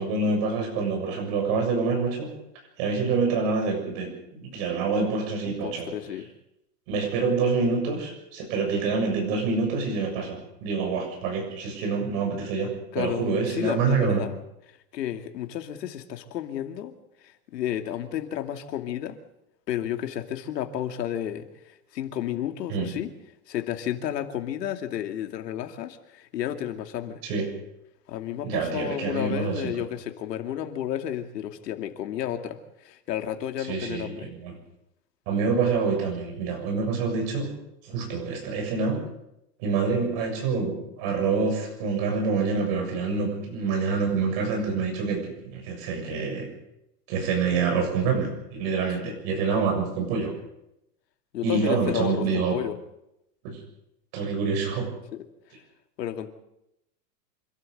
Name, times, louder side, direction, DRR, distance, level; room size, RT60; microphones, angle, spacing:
voice 1, 0.0-2.3 2.8-5.9 6.9-12.7 13.0-14.2 22.7-22.9 27.2-27.5 28.4-29.7 33.6-34.5 35.3-37.5 37.8-39.0 39.6-46.5 47.1-50.3 51.4-52.6 53.4-53.6 54.1-54.9, right 4 dB, 35° right, 2 dB, 7.1 m, -26 dB
voice 2, 5.5-6.3 12.9-14.4 14.9-16.9 17.2-19.2 19.7-21.5 21.9-23.1 23.5-27.2 28.1-34.3 49.0-49.2 51.3-52.8 55.1-55.2 56.0-56.3, left 11 dB, 75° left, 6 dB, 2.6 m, -32 dB
27.0 x 12.5 x 8.0 m, 0.85 s
supercardioid pair, 180°, 49 cm